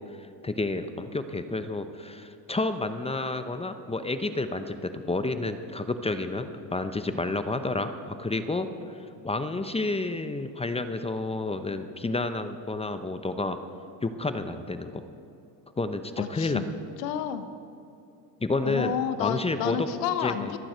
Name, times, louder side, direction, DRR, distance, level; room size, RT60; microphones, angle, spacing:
voice 1, 0.0-13.6 14.0-15.0 15.8-16.6 18.4-19.9 20.2-20.5, left 2 dB, 15° left, 9 dB, 0.7 m, -30 dB
voice 2, 16.2-16.7 17.0-17.5 18.6-20.6, left 10 dB, 90° left, 11 dB, 1.1 m, -30 dB
25.0 x 9.0 x 4.5 m, 2.7 s
supercardioid pair, 95°, 48 cm